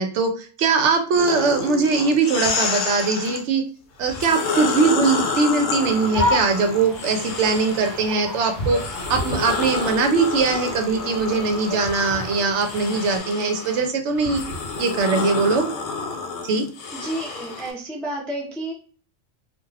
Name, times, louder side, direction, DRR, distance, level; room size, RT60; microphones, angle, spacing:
voice 1, 0.0-3.6 4.0-8.8 9.1-14.4 14.8-15.7 16.4-16.7, right 4 dB, 70° right, 5 dB, 0.8 m, -21 dB
sound 1, 1.2-3.4 4.0-8.1 8.6-17.7, left 4 dB, 65° left, 0.8 m, -29 dB
sound 2, 5.8-13.2, left 2 dB, 20° left, 1.0 m, -31 dB
voice 2, 16.9-18.7, right 1 dB, ahead, -2 dB, 0.3 m, -30 dB
2.4 x 2.3 x 3.2 m, 0.41 s
omnidirectional pair, 1.3 m